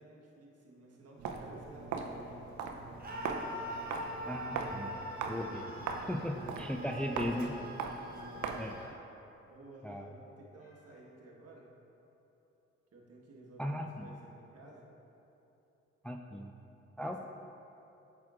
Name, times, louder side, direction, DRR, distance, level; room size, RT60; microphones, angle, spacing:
voice 1, 0.0-2.5 6.7-7.6 8.1-8.5 9.5-11.7 12.9-14.9 17.0-17.2, right 1 dB, 50° right, -3 dB, 1.4 m, -54 dB
Walk footsteps, 1.2-8.8, right 4 dB, 65° right, 0.6 m, -40 dB
sound 1, 3.0-5.0 6.1-7.0 8.3-9.3 10.6-11.5, left 1 dB, 85° left, 1.2 m, -60 dB
Screaming, 3.0-8.9, equal, 30° right, 1.1 m, -44 dB
voice 2, 4.3-4.9 5.3-7.5 8.6-8.7 9.8-10.1 13.6-14.1 16.0-16.5 17.0-17.2, equal, 5° left, 3 dB, 0.4 m, -37 dB
8.4 x 6.1 x 2.4 m, 3.0 s
hypercardioid pair, 40°, 31 cm